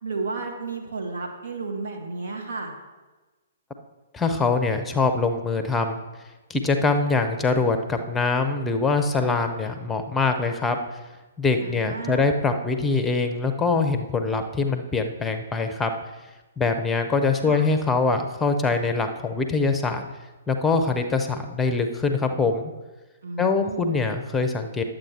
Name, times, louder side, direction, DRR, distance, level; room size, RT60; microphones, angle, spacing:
voice 1, 0.0-2.7 11.6-12.3 17.4-17.6 23.2-24.0, right 3 dB, 65° right, 2 dB, 1.9 m, -32 dB
voice 2, 4.1-6.0 6.5-10.8 11.4-15.9 16.6-20.1 20.5-22.7 23.4-24.8, left 4 dB, 10° left, 7 dB, 0.8 m, -23 dB
10.5 x 7.8 x 4.4 m, 1.2 s
figure-of-eight pair, 120°, 0 cm